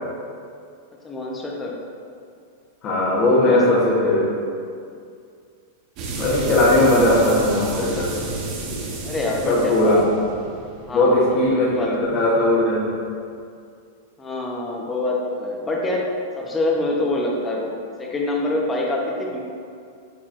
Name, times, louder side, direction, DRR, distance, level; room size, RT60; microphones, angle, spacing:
voice 1, 1.0-1.7 3.3-4.0 9.0-10.0 10.9-11.2 11.5-11.9 14.2-16.1 16.3-17.7 18.0-19.4, left 2 dB, 15° left, -2 dB, 0.9 m, -25 dB
voice 2, 2.8-4.3 6.2-8.1 9.5-10.0 10.9-13.0, left 1 dB, 35° left, -7 dB, 1.2 m, -18 dB
sound 1, 6.0-12.4, right 2 dB, 45° right, 1.0 m, -31 dB
8.5 x 4.3 x 2.6 m, 2.3 s
supercardioid pair, 140°, 0 cm